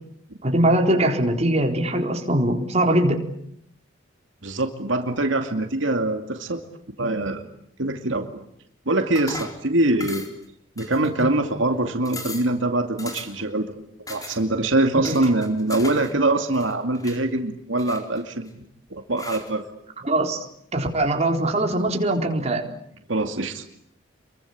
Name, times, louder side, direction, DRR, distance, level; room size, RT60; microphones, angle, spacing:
voice 1, 0.4-3.2 14.9-15.2 20.0-20.5 20.7-22.7, right 1 dB, 35° right, 3 dB, 4.2 m, -21 dB
voice 2, 4.4-6.6 7.0-7.5 7.8-8.4 8.9-10.3 10.8-13.7 14.1-18.5 18.9-19.6 23.1-23.6, right 2 dB, 75° right, 5 dB, 2.5 m, -23 dB
sound 1, 9.2-9.6 10.0-10.5 10.8-11.4 11.7-11.8 12.1-12.5 13.0-13.5 14.1-14.4 15.0-16.1 16.4-17.2 17.8-18.5 19.2-19.5, left 2 dB, 20° left, 4.4 m, -38 dB
29.0 x 23.5 x 8.6 m, 0.71 s
head